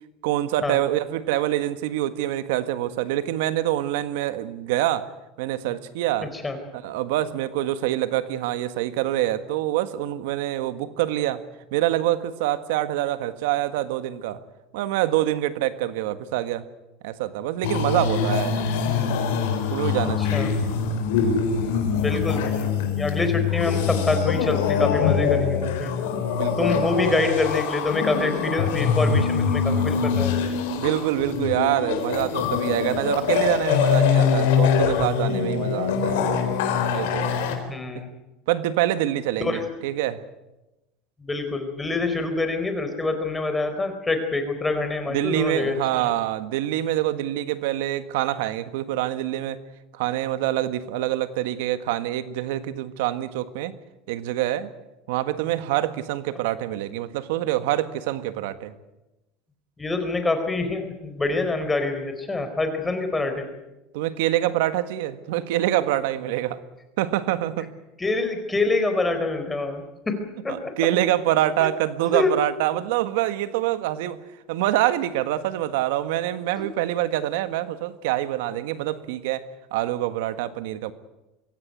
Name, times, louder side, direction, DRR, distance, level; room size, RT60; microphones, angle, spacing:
voice 1, 0.2-5.1 5.4-6.3 6.7-11.4 11.7-14.4 14.7-16.7 17.0-18.6 19.7-20.6 26.3-27.2 30.8-36.3 36.9-37.4 37.9-38.0 38.5-40.2 45.1-49.6 49.9-53.7 54.1-54.7 55.1-58.7 63.9-66.6 67.0-67.7 70.5-74.2 74.5-80.9, right 13 dB, 80° right, 12 dB, 1.6 m, -25 dB
voice 2, 6.2-6.6 20.3-20.5 21.9-25.9 26.6-30.3 37.7-38.1 39.4-39.6 41.2-46.0 59.8-63.5 68.0-70.7 72.1-72.3, left 3 dB, 15° left, 7 dB, 4.3 m, -26 dB
sound 1, 17.6-37.5, left 6 dB, 80° left, 4.4 m, -23 dB
23.0 x 16.5 x 9.3 m, 1.0 s
supercardioid pair, 125°, 0 cm